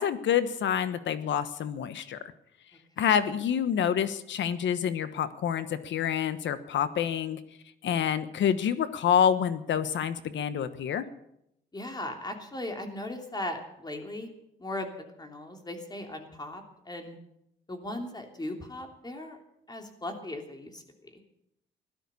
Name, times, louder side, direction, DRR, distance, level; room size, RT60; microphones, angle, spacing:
voice 1, 0.0-2.2 3.0-7.4 7.8-11.0, left 8 dB, 70° left, 12 dB, 1.2 m, -27 dB
voice 2, 11.7-14.3 14.6-14.9 15.2-17.2 17.7-19.4 19.7-21.2, left 1 dB, 20° left, 4 dB, 3.2 m, -38 dB
16.5 x 12.0 x 7.0 m, 0.78 s
cardioid pair, 90°, 20 cm